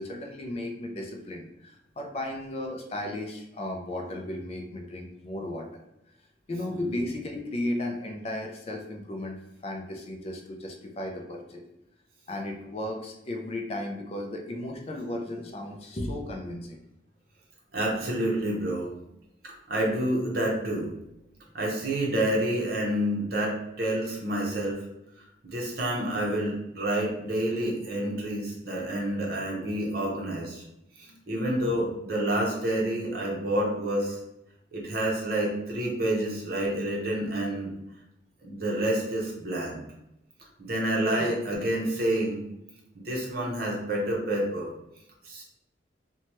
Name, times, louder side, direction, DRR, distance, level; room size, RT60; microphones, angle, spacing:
voice 1, 0.0-5.8 6.5-11.6 12.3-16.8 31.1-31.3 41.2-41.3, left 1 dB, 35° left, 2 dB, 0.4 m, -35 dB
voice 2, 6.7-7.0 17.7-18.9 19.4-20.9 21.5-24.8 25.2-30.6 31.0-34.2 34.7-37.7 38.4-39.8 40.6-42.4 43.0-44.7 45.2-45.4, right 1 dB, 55° right, -3 dB, 0.7 m, -28 dB
2.9 x 2.2 x 2.9 m, 0.85 s
head